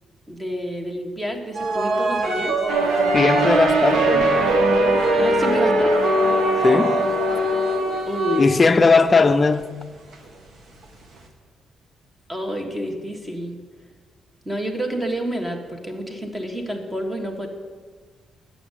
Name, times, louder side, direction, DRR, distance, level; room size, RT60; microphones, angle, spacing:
voice 1, 0.3-2.6 5.1-6.0 8.1-8.5 12.3-13.6 14.4-17.5, equal, 15° right, 1.5 m, -29 dB
sound 1, 1.5-8.9 9.5-9.6 10.1-10.3 10.8-10.9 11.2-11.3, right 1 dB, 60° right, 1.6 m, -22 dB
sound 2, 2.7-7.8, right 2 dB, 85° right, 1.2 m, -23 dB
voice 2, 3.1-4.5 6.6-7.0 8.4-9.7, left 4 dB, 25° left, 0.5 m, -18 dB
9.1 x 6.6 x 8.2 m
cardioid pair, 120°, 0 cm